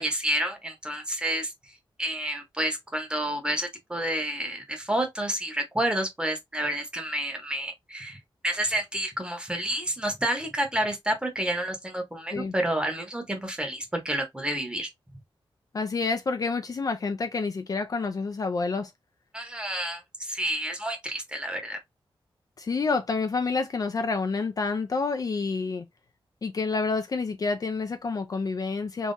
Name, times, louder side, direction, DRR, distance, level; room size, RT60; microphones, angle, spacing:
voice 1, 0.0-1.5 2.0-8.2 8.4-14.9 19.3-21.8, right 1 dB, 10° right, 1.0 m, -29 dB
voice 2, 15.7-18.9 22.6-25.8 26.4-29.1, left 4 dB, 40° left, 0.4 m, -28 dB
3.6 x 3.0 x 2.6 m
wide cardioid pair, 170°, 9 cm